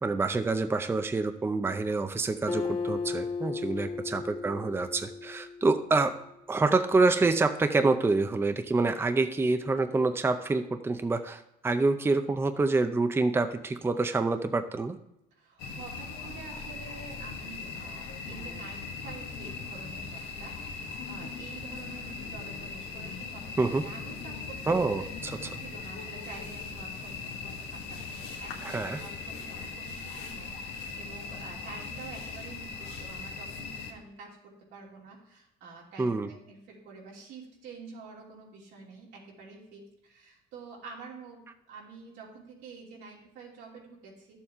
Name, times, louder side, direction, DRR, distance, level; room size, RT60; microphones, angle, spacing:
voice 1, 0.0-6.1 6.5-15.0 23.6-23.8 24.7-25.4 28.6-29.0 36.0-36.3, right 3 dB, 15° right, 8 dB, 0.6 m, -27 dB
Acoustic guitar, 2.5-6.1, left 4 dB, 35° left, 1.6 m, -35 dB
voice 2, 15.3-25.1 25.3-44.4, right 4 dB, 90° right, -3 dB, 2.9 m, -48 dB
sound 1, 15.6-33.9, left 4 dB, 85° left, 1.4 m, -39 dB
12.0 x 7.2 x 3.6 m, 0.86 s
cardioid pair, 110°, 17 cm